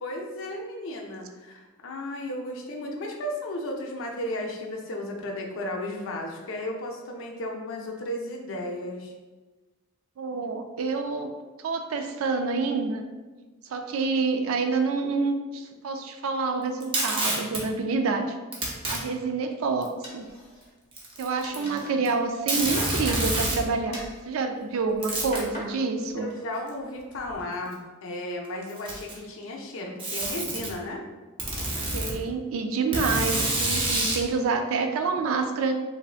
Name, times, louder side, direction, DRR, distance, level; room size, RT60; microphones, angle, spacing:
voice 1, 0.0-9.1 21.5-22.0 26.2-31.0, left 1 dB, 65° left, 0 dB, 0.5 m, -34 dB
voice 2, 10.2-11.3 11.6-13.0 13.7-18.4 18.9-20.3 21.2-26.3 31.9-35.7, right 4 dB, 70° right, 6 dB, 0.3 m, -27 dB
Packing tape duct tape, 16.8-17.6 18.5-19.0 19.8-19.9 20.9-21.8 22.1-22.2 22.5-23.6 25.0-25.5 26.7-26.8 27.7-27.8 28.6-29.3 30.0-30.7 31.4-32.1 32.9-34.2, right 2 dB, 25° right, 0.6 m, -27 dB
sound 1, 20.0-20.9 21.2-21.9 22.3-23.6 23.9-24.2 24.8-25.7 26.1-26.6 27.0-27.4, equal, 30° left, 0.8 m, -40 dB
3.3 x 2.6 x 2.4 m, 1.2 s
head